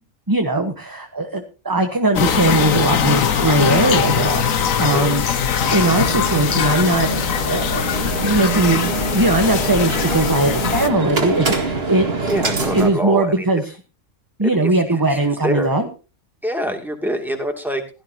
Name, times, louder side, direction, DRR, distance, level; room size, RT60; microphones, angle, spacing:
voice 1, 0.3-5.2 5.7-12.3 12.7-13.6 14.4-15.9, right 2 dB, 15° right, 5 dB, 1.2 m, -20 dB
sound 1, 2.1-10.9, left 7 dB, 90° left, 1.5 m, -21 dB
voice 2, 4.8-5.2 12.3-13.5 14.4-15.7 16.4-17.8, equal, ahead, 3 dB, 2.5 m, -25 dB
sound 2, 5.6-12.9, right 4 dB, 50° right, 2.2 m, -25 dB
17.0 x 13.0 x 2.9 m, 0.32 s
omnidirectional pair, 1.4 m